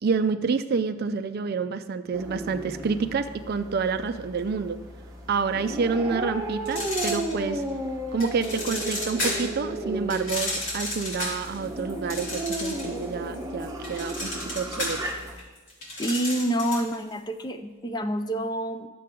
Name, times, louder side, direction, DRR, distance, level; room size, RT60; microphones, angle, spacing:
voice 1, 0.0-4.8 5.3-7.6 8.1-15.1, right 5 dB, 50° right, 10 dB, 0.4 m, -28 dB
sound 1, 2.1-15.4, right 1 dB, 15° right, 1.2 m, -34 dB
sound 2, 6.7-7.7 8.2-9.6 10.1-13.0 13.3-16.9, left 1 dB, 60° left, 2.8 m, -32 dB
voice 2, 16.0-18.9, right 1 dB, 20° left, 6 dB, 0.5 m, -27 dB
11.5 x 7.6 x 3.7 m, 1.3 s
head